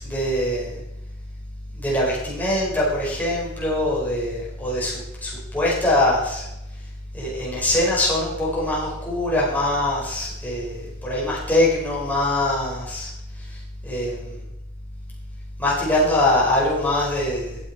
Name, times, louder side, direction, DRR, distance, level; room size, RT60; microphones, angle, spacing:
voice 1, 0.0-0.8 1.7-6.5 7.1-13.1 13.5-13.6 13.9-14.2 15.6-17.6, left 1 dB, 10° left, -6 dB, 5.2 m, -23 dB
15.0 x 9.9 x 4.5 m, 0.90 s
head